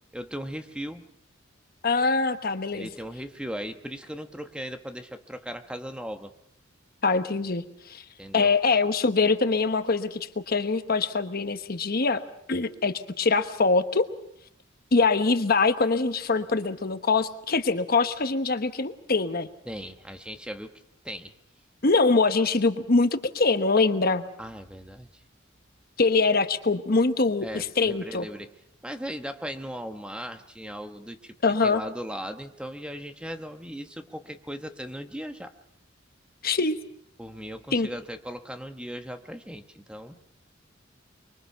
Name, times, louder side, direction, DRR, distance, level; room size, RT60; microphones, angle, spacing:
voice 1, 0.1-1.0 2.7-6.3 8.2-8.5 19.7-20.7 21.0-21.3 24.4-25.1 27.4-28.5 28.8-31.4 31.6-35.5 37.2-40.2, equal, 5° right, 7 dB, 1.1 m, -37 dB
voice 2, 1.8-2.9 7.0-8.0 8.3-12.2 12.5-14.1 14.9-19.5 21.8-24.2 26.0-28.2 31.4-31.8 36.4-36.8 37.7-37.9, left 3 dB, 50° left, 9 dB, 1.1 m, -23 dB
24.5 x 23.5 x 5.7 m, 0.74 s
head